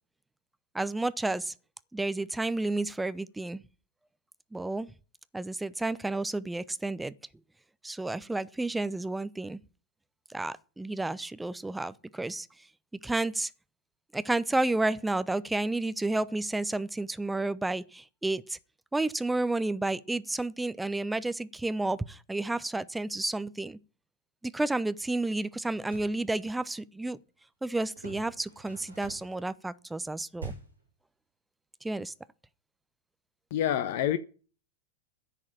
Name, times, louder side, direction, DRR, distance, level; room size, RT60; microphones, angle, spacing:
voice 1, 0.7-1.5 1.9-3.6 4.5-4.9 5.3-7.1 7.8-9.6 10.3-12.5 13.0-13.5 14.1-18.6 18.9-23.8 24.4-27.2 27.6-30.5 31.8-32.1, right 2 dB, 5° right, 0.7 m, -31 dB
sound 1, 25.7-26.2 27.9-29.4 30.4-30.9, right 4 dB, 80° right, 4.7 m, -44 dB
voice 2, 33.5-34.2, left 11 dB, 50° left, 0.9 m, -27 dB
10.5 x 7.5 x 9.0 m
figure-of-eight pair, 90°, 0 cm